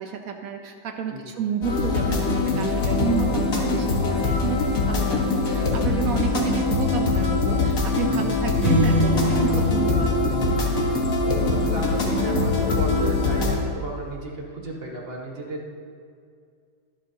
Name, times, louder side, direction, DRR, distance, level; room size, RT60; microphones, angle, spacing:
voice 1, 0.0-10.6, right 7 dB, 70° right, 5 dB, 0.8 m, -30 dB
sound 1, 1.6-13.5, left 3 dB, 45° left, 1.8 m, -23 dB
sound 2, 8.6-11.3, left 1 dB, 10° left, 2.9 m, -25 dB
voice 2, 11.3-15.7, right 2 dB, 30° right, -1 dB, 1.5 m, -34 dB
22.0 x 8.2 x 2.8 m, 2.3 s
omnidirectional pair, 2.3 m